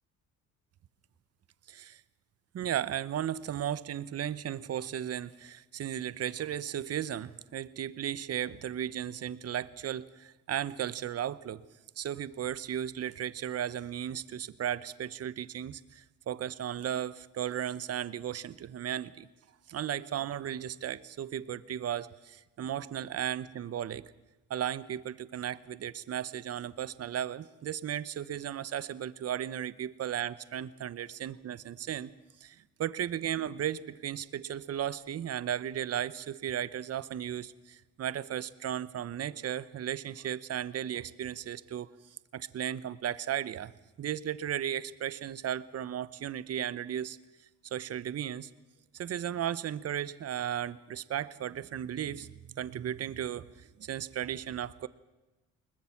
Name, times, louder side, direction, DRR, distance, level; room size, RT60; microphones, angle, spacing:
voice 1, 1.7-2.0 2.5-11.6 12.0-19.3 19.7-24.0 24.5-32.1 32.4-41.9 42.3-43.7 44.0-47.2 47.7-48.5 48.9-54.9, right 10 dB, 55° right, 17 dB, 0.9 m, -35 dB
22.0 x 20.0 x 7.3 m, 1.1 s
cardioid pair, 90°, 30 cm